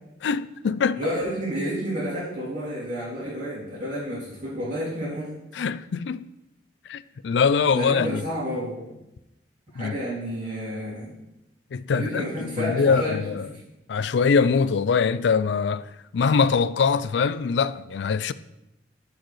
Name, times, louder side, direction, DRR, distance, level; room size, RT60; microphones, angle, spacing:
voice 1, 0.2-1.0 5.5-6.3 6.9-8.2 9.8-10.0 11.7-13.5 13.9-15.8 16.1-18.3, left 5 dB, 75° left, 0.4 m, -23 dB
voice 2, 0.9-5.3 7.7-9.0 9.7-11.1 11.9-13.2 13.5-13.6, equal, 45° right, 2.9 m, -30 dB
14.0 x 4.7 x 3.2 m
head